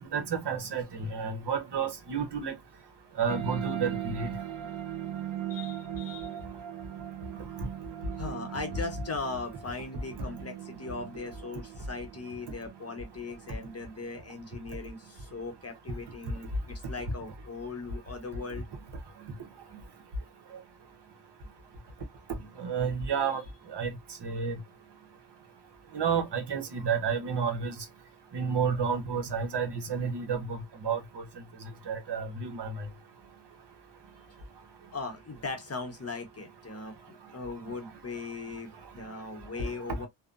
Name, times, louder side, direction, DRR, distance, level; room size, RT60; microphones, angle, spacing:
voice 1, 0.0-2.5 3.2-4.3 22.6-23.4 23.7-23.9 24.2-24.5 25.9-27.7 28.3-31.2 31.9-32.8 39.6-39.7, right 6 dB, 60° right, 0.9 m, -30 dB
sound 1, 3.3-14.3, right 11 dB, 85° right, 0.9 m, -39 dB
voice 2, 5.5-6.3 8.2-18.7 34.9-40.1, left 3 dB, 30° left, 0.8 m, -39 dB
2.6 x 2.1 x 2.4 m
cardioid pair, 70°, 47 cm